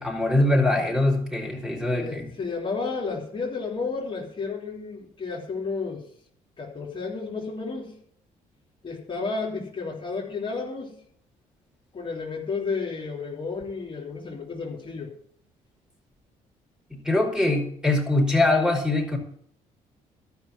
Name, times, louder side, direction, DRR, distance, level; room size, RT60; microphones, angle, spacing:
voice 1, 0.0-2.2 16.9-19.2, left 2 dB, 5° right, 0 dB, 5.1 m, -23 dB
voice 2, 2.0-6.0 6.6-7.9 8.8-10.9 11.9-15.1, left 4 dB, 35° left, -3 dB, 3.4 m, -32 dB
13.0 x 6.0 x 9.4 m, 0.65 s
cardioid pair, 85°, 15 cm